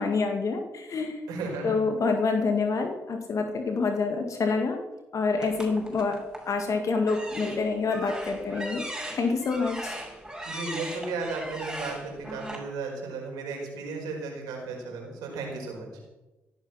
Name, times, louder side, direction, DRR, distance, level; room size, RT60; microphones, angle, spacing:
voice 1, 0.0-1.2 1.6-4.8 5.1-6.2 6.5-8.8 9.1-10.0, left 4 dB, 55° left, 4 dB, 2.2 m, -27 dB
voice 2, 1.3-1.8 10.5-15.9, right 3 dB, 80° right, 0 dB, 5.0 m, -34 dB
sound 1, 5.4-6.5 7.0-12.6, right 1 dB, 10° right, 6.0 m, -38 dB
16.5 x 11.0 x 5.9 m, 1.1 s
hypercardioid pair, 50°, 7 cm